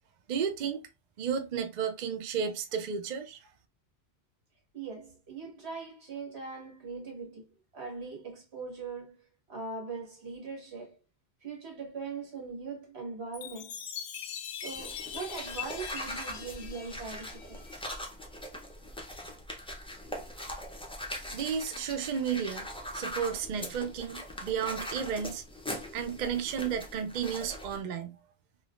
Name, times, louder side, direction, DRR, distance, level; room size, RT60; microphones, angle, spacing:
voice 1, 0.3-0.8 1.2-3.4 21.3-22.7 22.9-25.4 25.9-28.2, right 7 dB, 55° right, 0.6 m, -33 dB
voice 2, 4.7-7.4 7.7-9.2 9.5-11.0 11.4-13.7 14.6-17.8, right 4 dB, 75° right, 1.6 m, -41 dB
Chime, 13.3-17.9, left 8 dB, 65° left, 0.7 m, -42 dB
sound 1, 14.7-27.8, equal, 10° left, 0.4 m, -41 dB
3.2 x 2.7 x 2.4 m
omnidirectional pair, 1.1 m